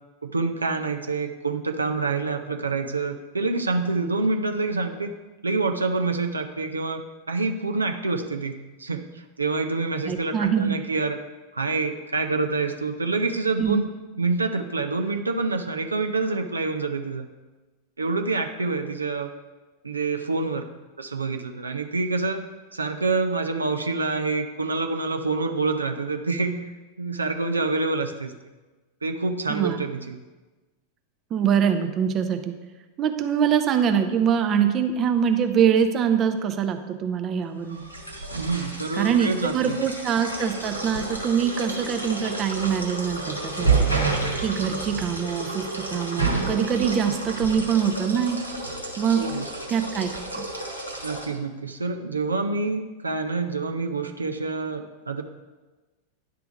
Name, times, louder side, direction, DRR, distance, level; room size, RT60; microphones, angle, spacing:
voice 1, 0.2-5.1 5.4-11.2 11.5-13.9 14.2-17.3 18.0-19.3 19.8-20.7 21.0-22.5 22.7-26.7 27.0-28.3 29.0-30.2 38.3-39.8 49.1-49.5 51.0-55.2, right 3 dB, 80° right, 6 dB, 0.5 m, -27 dB
voice 2, 10.1-10.8 13.6-13.8 29.5-29.8 31.3-32.5 33.0-37.8 39.0-44.1 44.4-48.4 49.0-49.2 49.7-50.4, right 7 dB, 30° right, 7 dB, 0.6 m, -24 dB
sound 1, 37.7-51.3, right 3 dB, 90° left, 1.2 m, -30 dB
10.0 x 3.5 x 5.1 m, 1.2 s
figure-of-eight pair, 90°, 0 cm